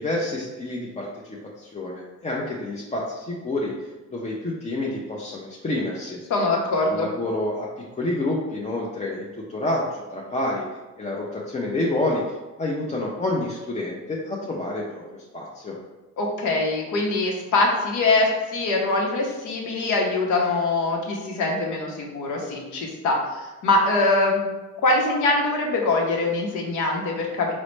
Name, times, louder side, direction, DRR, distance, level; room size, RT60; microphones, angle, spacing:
voice 1, 0.0-3.7 4.1-6.2 6.9-10.7 11.0-12.2 12.6-15.8, left 1 dB, 25° left, -4 dB, 0.5 m, -28 dB
voice 2, 6.3-7.1 16.2-24.4 24.8-27.5, left 2 dB, 75° left, 0 dB, 0.8 m, -23 dB
3.9 x 2.1 x 3.1 m, 1.1 s
cardioid pair, 90°, 30 cm